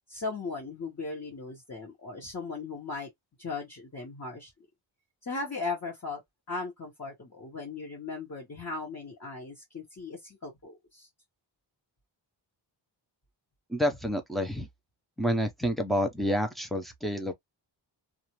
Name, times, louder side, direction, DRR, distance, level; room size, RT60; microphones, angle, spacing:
voice 1, 0.1-3.1 3.4-4.5 5.2-6.2 6.5-11.1, left 3 dB, 35° left, 1.0 m, -37 dB
voice 2, 13.7-14.7 15.2-17.3, equal, ahead, 0.6 m, -28 dB
2.5 x 2.4 x 2.9 m
wide cardioid pair, 145°, 46 cm